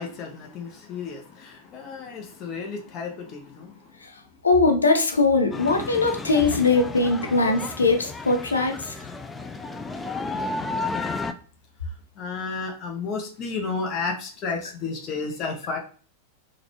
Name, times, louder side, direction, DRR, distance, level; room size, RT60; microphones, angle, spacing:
voice 1, 0.0-3.8 12.2-15.8, left 4 dB, 35° left, 1 dB, 0.8 m, -32 dB
voice 2, 4.4-8.9, left 3 dB, 75° left, 4 dB, 0.6 m, -21 dB
sound 1, 5.5-11.3, left 3 dB, 10° left, 0.3 m, -32 dB
3.9 x 2.4 x 2.9 m, 0.40 s
figure-of-eight pair, 90°, 0 cm